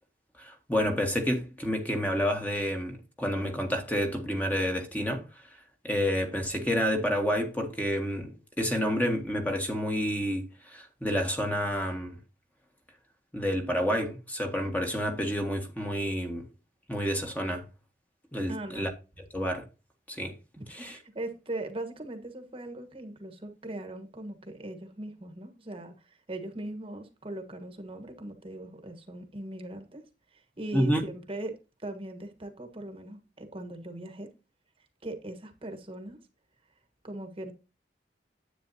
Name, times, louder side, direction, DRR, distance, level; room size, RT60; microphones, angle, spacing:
voice 1, 0.4-5.4 5.8-12.2 13.3-16.4 16.9-17.6 18.3-18.9 19.3-19.6 20.1-20.3 20.7-20.9 30.7-31.0, equal, 10° left, 1.6 m, -29 dB
voice 2, 18.5-18.9 20.6-34.3 34.8-36.2 37.0-37.5, right 1 dB, 30° right, 1.4 m, -40 dB
10.0 x 8.9 x 2.8 m
head